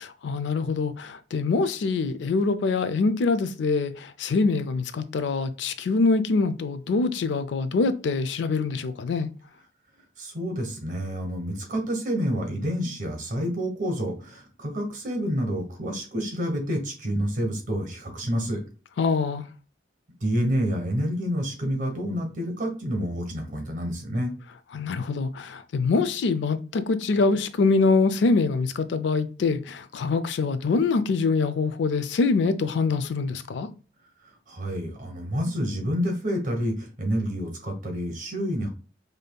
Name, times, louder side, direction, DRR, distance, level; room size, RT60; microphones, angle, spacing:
voice 1, 0.2-9.3 19.0-19.4 24.7-33.7, left 4 dB, 70° left, 0.4 m, -24 dB
voice 2, 10.2-18.6 20.2-24.3 34.5-38.7, equal, 45° right, 1.1 m, -28 dB
5.1 x 2.7 x 2.2 m
head